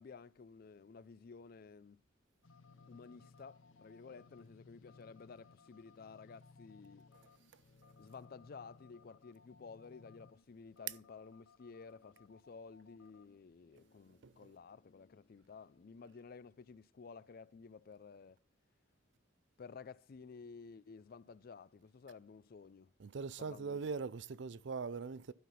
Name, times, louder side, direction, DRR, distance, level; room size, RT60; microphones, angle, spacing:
voice 1, 0.0-2.0 2.9-7.0 8.0-18.4 19.6-22.9 23.4-23.8, left 5 dB, 50° left, 0.4 m, -54 dB
sound 1, 2.4-16.2, left 4 dB, 85° left, 0.8 m, -63 dB
voice 2, 23.0-25.3, right 5 dB, 65° right, 0.4 m, -41 dB
12.0 x 5.9 x 5.4 m
head